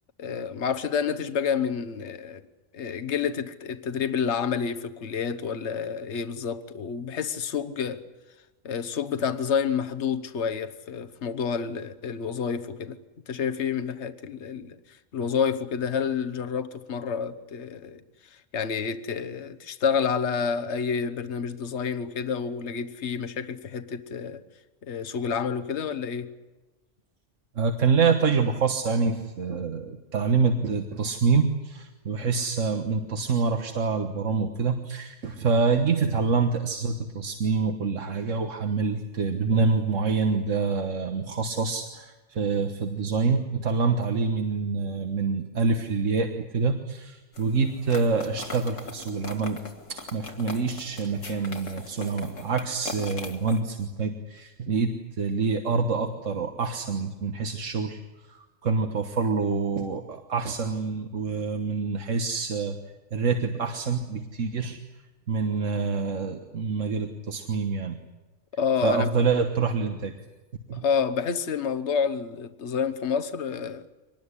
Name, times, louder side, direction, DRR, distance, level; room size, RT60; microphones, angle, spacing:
voice 1, 0.2-2.4 2.7-8.0 8.6-13.0 13.3-18.0 18.3-24.4 24.8-26.3 68.5-69.1 70.7-73.8, left 6 dB, 65° left, 1.4 m, -29 dB
voice 2, 27.6-49.6 49.9-58.0 58.3-62.8 63.1-64.8 65.3-68.0 68.8-70.1 70.7-70.8, right 4 dB, 85° right, 1.7 m, -26 dB
sound 1, 47.3-53.6, left 3 dB, 80° left, 2.7 m, -41 dB
24.0 x 20.0 x 10.0 m
omnidirectional pair, 1.3 m